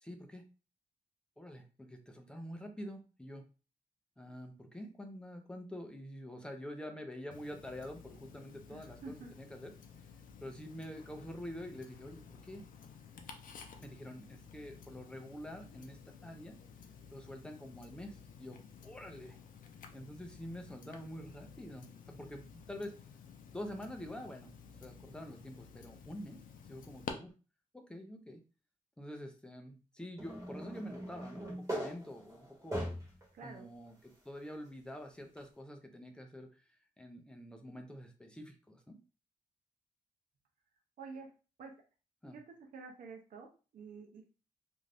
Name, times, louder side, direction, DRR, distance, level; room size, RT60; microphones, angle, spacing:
voice 1, 0.0-0.5 1.4-3.5 4.2-9.7 10.4-12.7 13.8-16.6 17.1-19.4 19.9-23.0 23.5-24.5 24.8-26.4 26.7-27.3 27.7-28.4 29.0-32.9 33.4-36.5 37.0-39.0 42.2-42.4, equal, 5° left, 4 dB, 0.4 m, -47 dB
Tick-tock, 7.3-27.1, left 6 dB, 80° left, 0.4 m, -53 dB
voice 2, 8.7-9.3 33.3-33.7 41.0-41.3 41.6-41.7 42.3-44.3, right 4 dB, 75° right, 2 dB, 0.5 m, -49 dB
sound 1, 30.2-33.2 33.9-34.0 35.4-35.5, equal, 20° right, 1.0 m, -41 dB
2.5 x 2.2 x 3.3 m, 0.34 s
wide cardioid pair, 180°, 14 cm